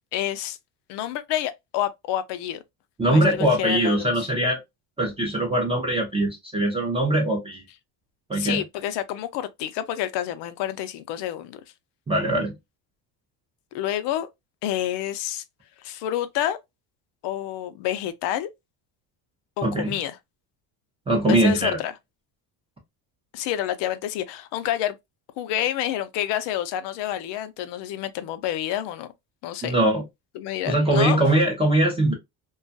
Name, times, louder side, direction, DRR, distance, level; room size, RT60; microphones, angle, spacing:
voice 1, 0.1-0.6 0.9-2.6 3.1-4.3 8.4-11.6 13.7-14.3 14.6-15.4 15.8-16.6 17.2-18.5 19.6-20.1 21.3-21.9 23.3-24.9 25.4-29.1 29.4-29.7 30.3-31.2, left 12 dB, 65° left, 0.5 m, -28 dB
voice 2, 3.0-4.6 5.0-7.6 8.3-8.6 12.1-12.5 19.6-19.9 21.1-21.8 29.6-30.0 30.7-32.1, right 1 dB, 15° right, 0.5 m, -21 dB
2.4 x 2.3 x 2.5 m
cardioid pair, 135°, 46 cm